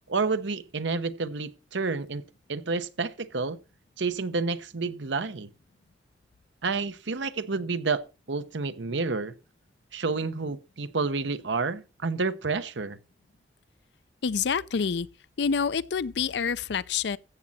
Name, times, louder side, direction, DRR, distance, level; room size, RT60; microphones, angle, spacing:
voice 1, 0.1-2.2 2.5-3.6 4.0-5.5 6.6-8.0 8.3-9.3 9.9-13.0, right 4 dB, 80° right, 0.9 m, -29 dB
voice 2, 14.2-15.1 15.4-17.2, left 6 dB, 65° left, 0.5 m, -27 dB
14.5 x 7.6 x 4.2 m
head